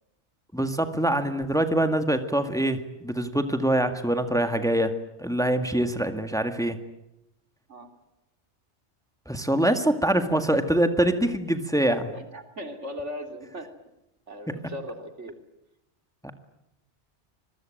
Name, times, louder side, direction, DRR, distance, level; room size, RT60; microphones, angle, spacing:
voice 1, 0.5-4.9 5.2-6.8 9.3-12.1 14.5-14.6 16.2-16.3, right 1 dB, 5° left, 7 dB, 1.9 m, -24 dB
voice 2, 9.5-9.8 12.1-13.7 14.3-15.4, equal, 90° right, 6 dB, 3.4 m, -38 dB
25.5 x 22.5 x 9.0 m, 0.90 s
omnidirectional pair, 1.2 m